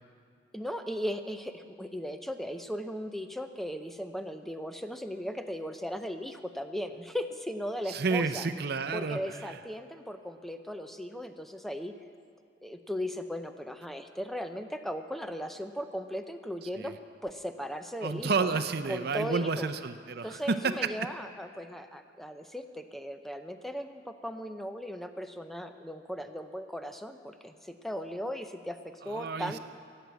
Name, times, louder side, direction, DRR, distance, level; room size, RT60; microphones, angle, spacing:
voice 1, 0.5-8.5 8.9-11.9 12.6-16.9 17.2-18.6 18.9-19.7 20.2-29.6, equal, ahead, 7 dB, 0.6 m, -37 dB
voice 2, 7.9-9.5 16.8-16.9 18.0-20.4 29.0-29.6, right 4 dB, 55° right, 10 dB, 0.6 m, -31 dB
15.5 x 7.7 x 8.3 m, 2.2 s
head